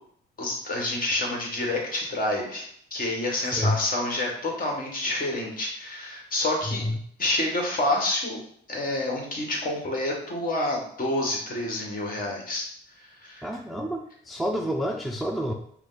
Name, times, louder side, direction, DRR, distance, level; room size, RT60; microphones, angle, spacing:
voice 1, 0.4-6.8 7.2-8.4 8.7-12.7 13.0-13.4, left 1 dB, 45° left, -1 dB, 1.4 m, -28 dB
voice 2, 6.7-7.0 13.4-15.5, equal, ahead, 3 dB, 0.3 m, -28 dB
5.1 x 2.2 x 3.9 m, 0.64 s
cardioid pair, 90°, 20 cm